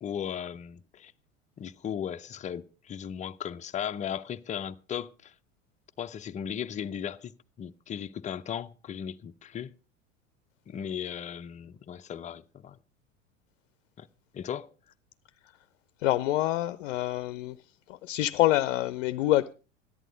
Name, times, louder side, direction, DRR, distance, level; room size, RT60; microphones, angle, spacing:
voice 1, 0.0-1.1 1.6-5.3 6.0-7.3 7.6-9.7 10.7-12.8 14.0-14.1 14.3-14.7, left 9 dB, 20° left, 0.6 m, -36 dB
voice 2, 16.0-17.6 17.9-19.5, left 15 dB, 55° left, 0.6 m, -26 dB
14.0 x 11.0 x 5.1 m
figure-of-eight pair, 80°, 38 cm